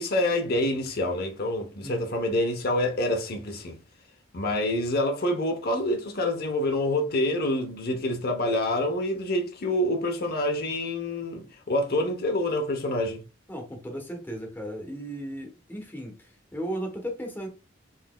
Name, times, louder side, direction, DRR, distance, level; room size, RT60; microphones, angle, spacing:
voice 1, 0.0-3.7 4.3-13.2, left 1 dB, 50° left, 0.8 m, -27 dB
voice 2, 13.5-17.5, right 1 dB, 10° left, 1.0 m, -36 dB
4.1 x 3.9 x 2.2 m
head